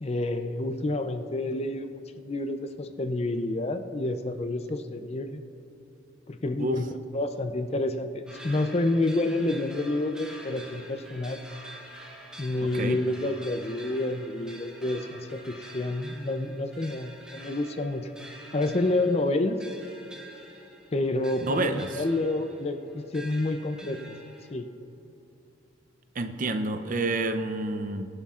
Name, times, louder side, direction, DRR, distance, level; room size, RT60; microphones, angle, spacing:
voice 1, 0.0-5.4 6.3-11.4 12.4-18.1 18.5-19.6 20.9-24.2 24.5-24.7, left 2 dB, 30° left, 8 dB, 0.5 m, -29 dB
sound 1, 8.3-24.5, right 1 dB, 5° right, 1.5 m, -47 dB
voice 2, 12.6-13.0 21.4-22.0 26.2-28.1, right 2 dB, 40° right, 8 dB, 0.6 m, -29 dB
22.5 x 11.5 x 2.5 m, 2.8 s
head